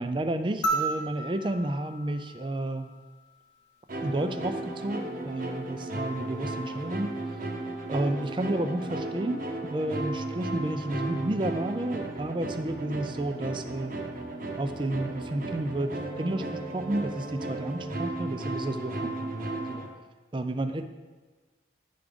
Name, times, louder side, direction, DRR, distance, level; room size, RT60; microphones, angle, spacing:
voice 1, 0.0-2.9 4.0-7.1 7.9-13.9 14.6-19.9 20.3-20.8, right 1 dB, 25° right, 8 dB, 0.4 m, -31 dB
sound 1, 0.6-3.2 4.8-4.9, right 3 dB, 80° left, 0.8 m, -33 dB
sound 2, 3.9-19.9, right 2 dB, 45° right, 0.8 m, -35 dB
10.5 x 3.6 x 5.1 m, 1.3 s
head